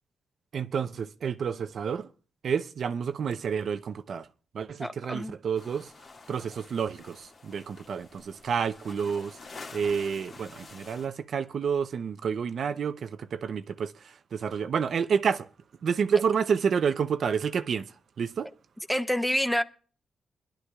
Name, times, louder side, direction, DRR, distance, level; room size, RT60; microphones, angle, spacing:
voice 1, 0.5-2.1 2.4-4.3 4.5-5.9 6.3-9.4 9.7-15.5 15.8-18.5, right 6 dB, 65° right, 0.7 m, -29 dB
voice 2, 4.8-5.3 18.9-19.6, equal, ahead, 0.8 m, -27 dB
sound 1, 5.5-11.1, left 3 dB, 50° left, 1.9 m, -48 dB
22.5 x 11.5 x 2.4 m
cardioid pair, 105°, 0 cm